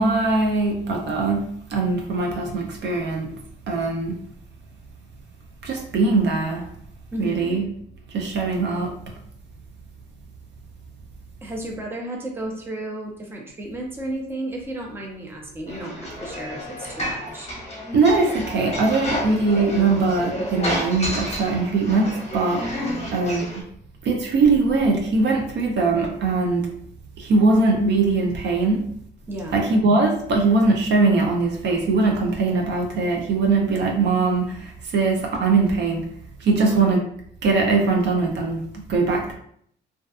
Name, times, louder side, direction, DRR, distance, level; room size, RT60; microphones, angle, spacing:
voice 1, 0.0-3.3 3.7-4.2 5.6-6.7 7.2-7.7 8.1-9.1 17.9-22.7 23.1-23.5 24.0-26.7 27.2-28.9 29.5-36.0 36.4-37.0 37.4-39.3, right 3 dB, 60° right, 1 dB, 0.5 m, -21 dB
voice 2, 7.1-7.6 11.4-17.5 22.8-23.2 29.3-29.7 36.5-37.0, right 1 dB, 10° right, 0 dB, 0.5 m, -33 dB
sound 1, 15.7-23.6, left 1 dB, 35° left, 0.8 m, -31 dB
2.6 x 2.2 x 2.3 m, 0.66 s
cardioid pair, 90°, 20 cm